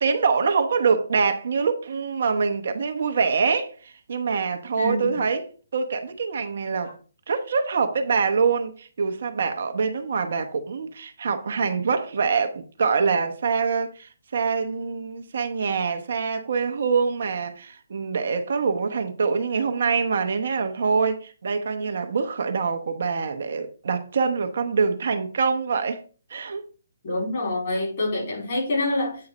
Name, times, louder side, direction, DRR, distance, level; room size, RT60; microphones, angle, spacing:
voice 1, 0.0-7.0 7.3-26.0 26.3-26.6, right 5 dB, 55° right, 1.1 m, -25 dB
voice 2, 4.8-5.1 27.0-29.3, left 2 dB, 50° left, 4.0 m, -26 dB
8.7 x 3.9 x 5.2 m
figure-of-eight pair, 135°, 0 cm